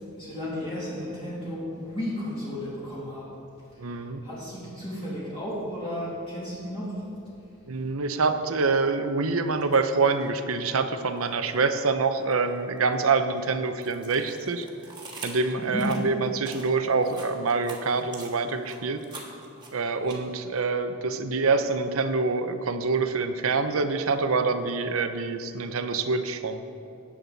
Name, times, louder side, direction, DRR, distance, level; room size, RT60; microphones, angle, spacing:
voice 1, 0.2-3.3 3.9-7.1 15.6-15.8, left 1 dB, 25° left, -9 dB, 2.8 m, -34 dB
voice 2, 3.8-4.2 7.7-14.7 15.2-19.0 19.7-26.6, right 4 dB, 75° right, 9 dB, 0.7 m, -26 dB
sound 1, 9.6-9.8 10.2-11.7 12.2-20.6, right 3 dB, 20° right, 1.6 m, -45 dB
18.5 x 7.5 x 4.0 m, 2.6 s
head